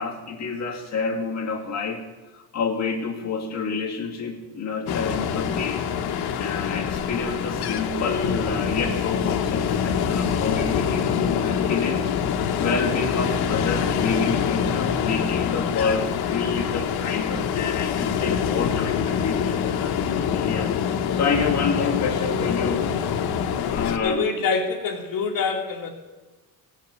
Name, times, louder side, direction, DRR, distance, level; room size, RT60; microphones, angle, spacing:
voice 1, 0.0-2.0 2.3-5.8 6.4-12.1 12.6-20.0 20.3-22.9 23.7-24.2, left 4 dB, 45° left, 0 dB, 2.4 m, -28 dB
Ocean, 4.9-24.0, left 7 dB, 85° left, 1.1 m, -25 dB
voice 2, 24.0-25.9, left 5 dB, 60° left, 1 dB, 2.5 m, -25 dB
18.0 x 6.5 x 8.1 m, 1.2 s
cardioid pair, 155°, 37 cm